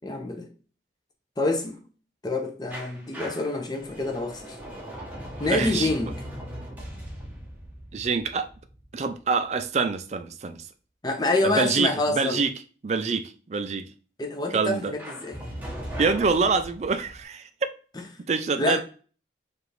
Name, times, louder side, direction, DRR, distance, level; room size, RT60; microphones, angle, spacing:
voice 1, 0.0-0.5 1.4-1.8 2.2-4.6 5.4-6.2 11.0-12.4 14.2-15.4 18.0-18.1 18.6-18.8, left 2 dB, 20° left, 0.6 m, -27 dB
sound 1, 2.7-9.5 15.0-17.2, equal, 10° right, 0.9 m, -39 dB
voice 2, 5.4-5.9 7.9-8.5 8.9-10.6 11.4-12.5 12.8-13.9 14.5-14.9 16.0-17.4 18.3-18.8, right 4 dB, 40° right, 0.4 m, -25 dB
4.8 x 2.5 x 3.2 m
head